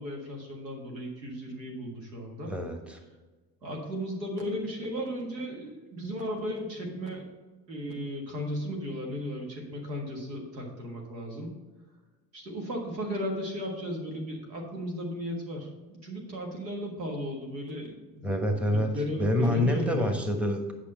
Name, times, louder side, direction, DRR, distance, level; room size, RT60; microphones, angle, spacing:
voice 1, 0.0-2.5 3.6-7.2 7.7-11.5 12.3-20.1, equal, 80° right, 0 dB, 1.7 m, -35 dB
voice 2, 2.5-3.0 18.2-18.9 19.2-20.7, left 1 dB, ahead, 3 dB, 1.2 m, -27 dB
8.6 x 5.9 x 4.2 m, 1.3 s
figure-of-eight pair, 60°, 49 cm